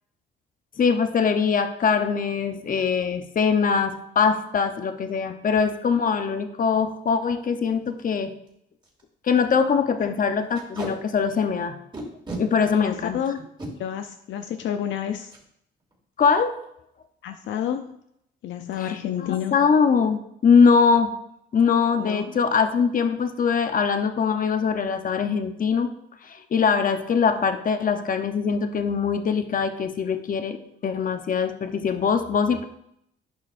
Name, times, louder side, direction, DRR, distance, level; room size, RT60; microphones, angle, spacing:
voice 1, 0.8-8.3 9.2-11.8 12.4-13.2 16.2-16.5 18.8-21.1 21.5-25.9 26.3-30.6 30.8-32.6, left 6 dB, 45° left, 8 dB, 0.8 m, -22 dB
Packing tape duct tape, 6.9-7.1 7.5-7.6 7.9-8.0 8.5-8.6 8.8-9.0 9.4-9.5 10.5-10.9 11.9-12.4 13.4-13.7 15.3-15.4 15.8-16.0 16.2-16.6, right 2 dB, 25° right, 2.6 m, -35 dB
voice 2, 10.1-10.5 12.7-13.4 13.8-15.3 17.2-18.0 18.4-19.6 22.0-22.3 27.3-27.4, left 9 dB, 70° left, 6 dB, 0.5 m, -30 dB
10.5 x 5.6 x 2.6 m, 0.75 s
cardioid pair, 90°, 20 cm